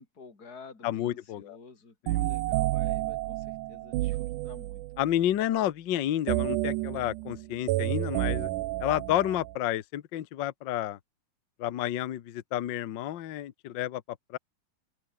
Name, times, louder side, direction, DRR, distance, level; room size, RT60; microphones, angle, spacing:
voice 1, 0.0-4.8, left 4 dB, 30° left, 4.6 m, -51 dB
voice 2, 0.8-1.6 2.1-2.3 5.0-8.5 8.8-11.0 11.6-14.0 14.3-14.4, left 12 dB, 80° left, 1.0 m, -30 dB
sound 1, 2.1-5.1 6.3-9.6, right 18 dB, 80° right, 2.2 m, -30 dB
open air
omnidirectional pair, 3.7 m